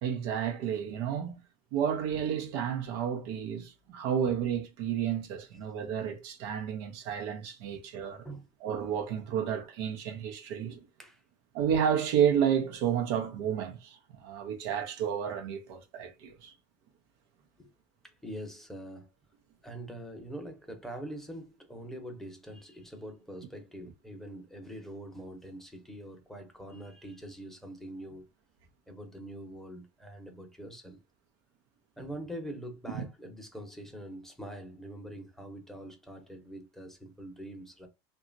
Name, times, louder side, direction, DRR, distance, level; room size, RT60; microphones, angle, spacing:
voice 1, 0.0-1.4 1.7-8.3 8.6-10.8 11.5-16.5 32.9-33.0, right 8 dB, 75° right, 0.7 m, -31 dB
voice 2, 18.0-19.1 19.6-28.3 28.9-31.0 32.0-37.9, right 1 dB, 5° left, 0.8 m, -44 dB
2.9 x 2.3 x 2.5 m
supercardioid pair, 100°, 14 cm